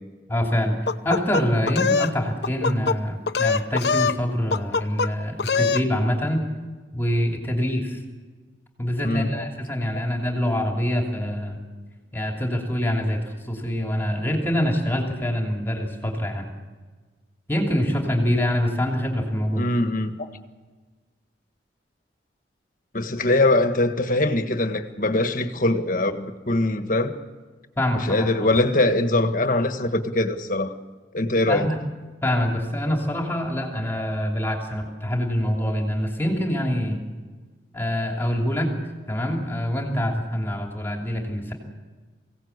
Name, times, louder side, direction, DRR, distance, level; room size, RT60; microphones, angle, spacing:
voice 1, 0.3-0.8 1.0-6.4 6.9-8.0 8.8-11.6 12.1-16.5 17.5-19.7 27.8-28.3 31.5-31.8 32.2-37.0 37.7-38.7 39.1-41.5, equal, 15° left, 2.9 m, -25 dB
sound 1, 0.9-2.1 2.4-3.0 3.3-4.2 4.5-5.1 5.4-5.8, left 5 dB, 65° left, 0.9 m, -23 dB
voice 2, 9.0-9.5 19.6-20.3 22.9-27.1 28.0-30.7 31.1-31.7, left 2 dB, 50° left, 1.6 m, -22 dB
24.0 x 17.0 x 8.2 m
head